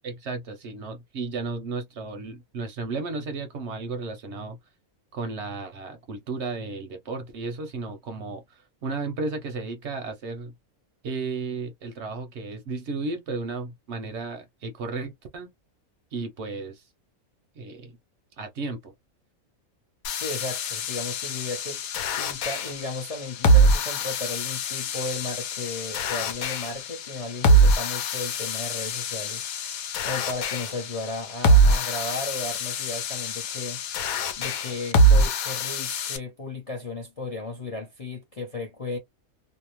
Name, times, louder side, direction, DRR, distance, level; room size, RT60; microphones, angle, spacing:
voice 1, 0.0-4.6 5.1-10.5 11.0-15.5 16.1-16.9 17.6-18.0 18.4-18.9, right 3 dB, 65° right, 0.8 m, -34 dB
sound 1, 20.0-36.2, right 2 dB, 80° left, 1.1 m, -24 dB
voice 2, 20.1-21.8 22.2-29.5 30.0-33.8 34.4-39.0, left 2 dB, 45° left, 0.4 m, -35 dB
2.6 x 2.0 x 2.9 m
omnidirectional pair, 1.5 m